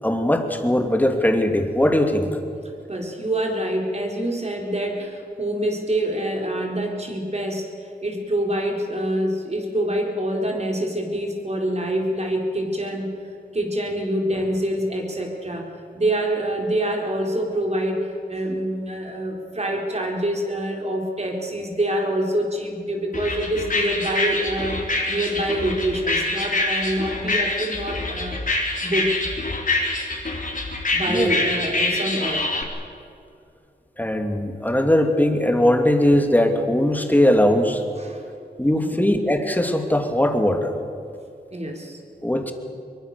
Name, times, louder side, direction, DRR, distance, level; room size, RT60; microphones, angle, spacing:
voice 1, 0.0-2.3 31.1-31.3 34.0-37.8 38.6-40.7 42.2-42.5, left 1 dB, 10° left, 4 dB, 2.7 m, -20 dB
voice 2, 2.9-13.1 13.5-28.4 28.8-29.3 30.9-32.5 38.0-38.3 38.8-39.0 41.5-42.0, right 1 dB, 40° right, 1 dB, 4.5 m, -26 dB
sound 1, 23.1-32.6, left 2 dB, 50° left, 4.2 m, -25 dB
23.5 x 22.5 x 7.0 m, 2.5 s
wide cardioid pair, 70°, 18 cm